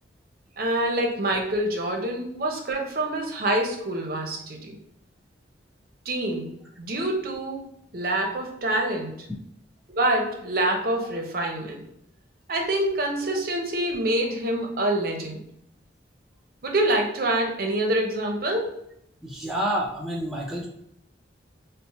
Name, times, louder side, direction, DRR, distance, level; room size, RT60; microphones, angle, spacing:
voice 1, 0.6-4.8 6.1-9.3 9.9-11.8 12.5-15.4 16.6-18.8, right 1 dB, 50° right, 2 dB, 0.6 m, -26 dB
voice 2, 19.2-20.7, right 1 dB, ahead, -4 dB, 0.4 m, -28 dB
4.1 x 2.0 x 2.8 m, 0.74 s
head